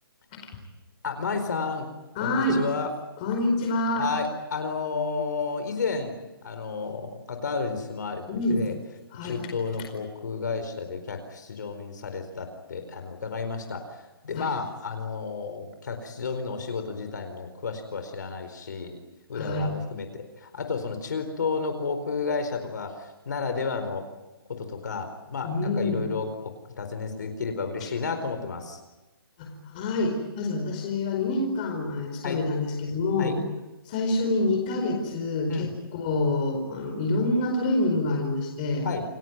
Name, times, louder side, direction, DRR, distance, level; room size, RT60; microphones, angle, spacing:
voice 1, 1.0-1.9 2.2-2.9 4.0-6.2 6.4-8.2 8.5-8.7 9.2-19.0 19.3-24.0 24.5-26.3 26.8-28.8 32.2-32.4 33.2-33.3 35.5-35.7 38.8-39.0, left 4 dB, 50° left, 7 dB, 4.5 m, -31 dB
voice 2, 2.1-2.6 3.2-4.1 8.3-8.6 9.1-9.4 14.3-14.5 19.3-19.7 25.4-26.0 29.4-33.4 33.8-38.9, left 2 dB, 20° left, 2 dB, 4.7 m, -27 dB
29.0 x 19.0 x 9.5 m, 1.1 s
hypercardioid pair, 180°, 12 cm